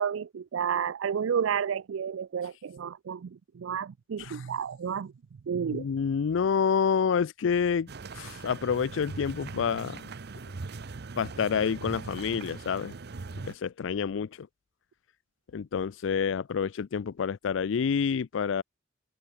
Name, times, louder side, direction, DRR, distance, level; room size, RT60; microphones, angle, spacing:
voice 1, 0.0-5.1 5.5-5.9, right 7 dB, 80° right, 0.4 m, -31 dB
voice 2, 5.7-7.9 8.2-10.1 11.2-12.9 13.5-14.5 15.5-18.6, left 6 dB, 70° left, 0.4 m, -28 dB
sound 1, 7.9-13.5, right 3 dB, 55° right, 0.7 m, -40 dB
open air
head